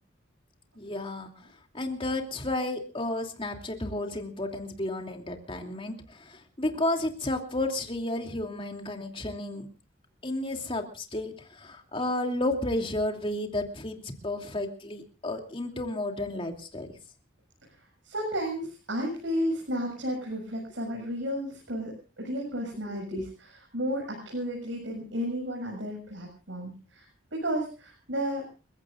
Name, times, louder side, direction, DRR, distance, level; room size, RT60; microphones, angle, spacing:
voice 1, 0.8-1.5 1.7-9.7 10.2-16.9 23.1-23.3, left 1 dB, 30° left, 3 dB, 2.9 m, -32 dB
voice 2, 18.0-28.4, equal, 75° right, 0 dB, 7.2 m, -33 dB
30.0 x 16.0 x 2.5 m, 0.34 s
head